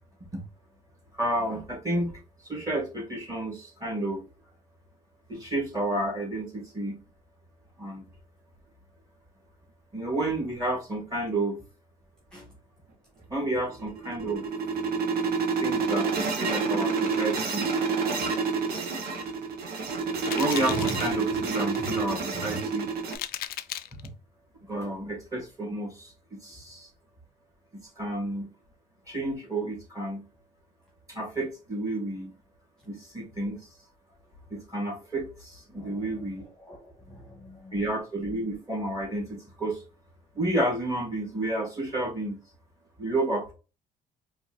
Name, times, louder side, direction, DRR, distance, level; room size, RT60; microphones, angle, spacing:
voice 1, 1.2-2.1 2.5-4.2 5.3-6.9 7.8-8.0 9.9-11.6 13.3-14.4 15.6-17.6 20.4-22.9 24.7-26.1 26.4-26.9 28.0-28.5 29.1-30.2 31.1-32.3 32.9-33.6 34.5-36.4 37.7-39.8 40.3-42.4 43.0-43.5, right 1 dB, 20° right, 2.3 m, -30 dB
sound 1, 13.7-23.2, right 5 dB, 65° right, 1.0 m, -28 dB
sound 2, 19.5-19.6 20.2-21.1 21.5-21.9 22.5-22.6 23.1-24.1, left 13 dB, 65° left, 0.4 m, -36 dB
voice 2, 35.8-37.8, left 1 dB, 5° left, 1.4 m, -49 dB
4.6 x 2.6 x 3.1 m
cardioid pair, 110°, 17 cm